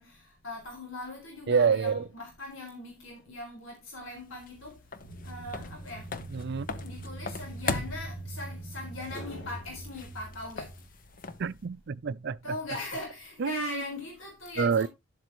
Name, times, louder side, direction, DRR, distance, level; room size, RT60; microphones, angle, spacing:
voice 1, 0.0-4.8 5.2-6.1 6.8-10.8 12.4-14.9, left 2 dB, 85° left, 4.2 m, -40 dB
voice 2, 1.5-2.0 6.3-6.7 11.4-12.5 13.4-13.8 14.6-14.9, right 6 dB, 55° right, 0.4 m, -27 dB
sound 1, 4.0-11.7, left 4 dB, 45° left, 1.0 m, -40 dB
sound 2, 5.0-10.9, right 2 dB, 60° left, 2.7 m, -42 dB
12.0 x 7.8 x 3.0 m
head